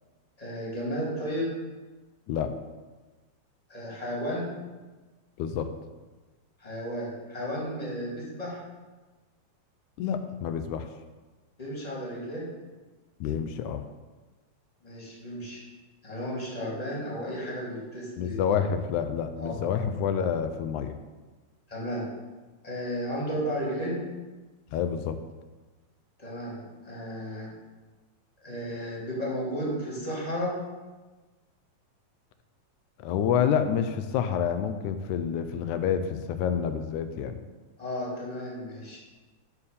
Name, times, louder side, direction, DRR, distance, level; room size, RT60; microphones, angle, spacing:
voice 1, 0.4-1.5 3.7-4.5 6.6-8.6 11.6-12.4 14.8-15.6 16.0-18.4 19.4-19.6 21.7-22.1 22.6-24.0 26.2-27.5 28.4-30.5 37.8-39.0, equal, 15° left, -5 dB, 2.7 m, -33 dB
voice 2, 5.4-5.7 10.0-10.9 13.2-13.9 18.2-21.0 24.7-25.2 33.0-37.4, left 8 dB, 90° left, 9 dB, 2.1 m, -28 dB
9.7 x 4.7 x 6.9 m, 1.3 s
omnidirectional pair, 3.4 m